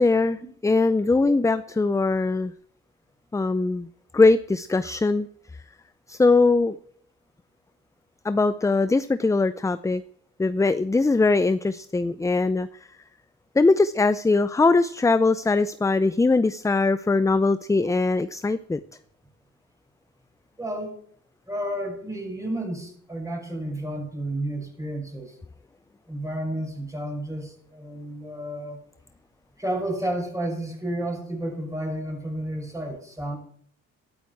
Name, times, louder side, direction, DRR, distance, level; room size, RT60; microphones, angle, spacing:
voice 1, 0.0-2.5 3.3-3.9 4.1-5.3 6.1-6.8 8.2-10.0 10.4-12.7 13.6-18.8, left 3 dB, 10° left, 14 dB, 0.5 m, -21 dB
voice 2, 20.6-20.9 21.5-25.3 26.1-28.8 29.6-33.4, right 1 dB, 10° right, 1 dB, 6.2 m, -31 dB
13.5 x 13.0 x 4.7 m, 0.62 s
cardioid pair, 90°, 30 cm